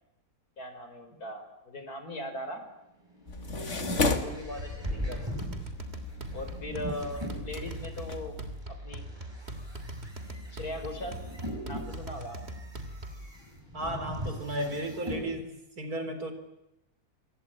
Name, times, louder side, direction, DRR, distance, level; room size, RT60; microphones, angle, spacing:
voice 1, 0.6-2.6 4.1-5.3 6.3-8.3 8.7-9.0 10.5-11.2 11.6-12.5, left 1 dB, 65° left, 8 dB, 4.6 m, -39 dB
sound 1, 3.0-8.0 8.6-15.3, equal, 15° right, 7.5 m, -40 dB
sound 2, 3.3-8.5, left 3 dB, 45° left, 2.3 m, -35 dB
sound 3, 4.6-13.3, right 1 dB, 40° right, 3.3 m, -41 dB
voice 2, 13.7-15.5 15.8-16.3, right 1 dB, 65° right, 8 dB, 4.5 m, -34 dB
27.0 x 24.5 x 8.8 m, 0.87 s
omnidirectional pair, 1.7 m